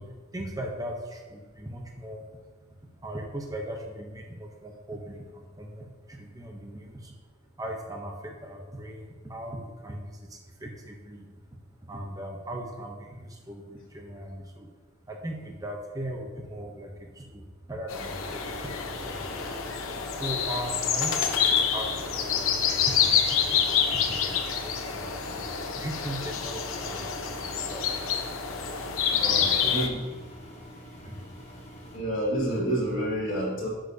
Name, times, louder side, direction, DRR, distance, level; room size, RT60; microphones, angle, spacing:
voice 1, 0.0-2.3 3.0-7.1 7.6-11.3 11.8-14.7 15.0-19.7 20.1-23.2 23.5-23.6 23.9-28.1 29.2-29.9 30.5-30.7 31.0-31.2, right 1 dB, 15° right, 1 dB, 0.7 m, -39 dB
sound 1, 17.9-29.9, left 7 dB, 90° left, 0.8 m, -27 dB
Engine, 18.2-32.0, equal, 35° left, 1.4 m, -46 dB
voice 2, 29.1-30.0 31.9-33.7, right 1 dB, 65° left, -10 dB, 1.7 m, -29 dB
9.5 x 6.4 x 2.7 m, 1.4 s
head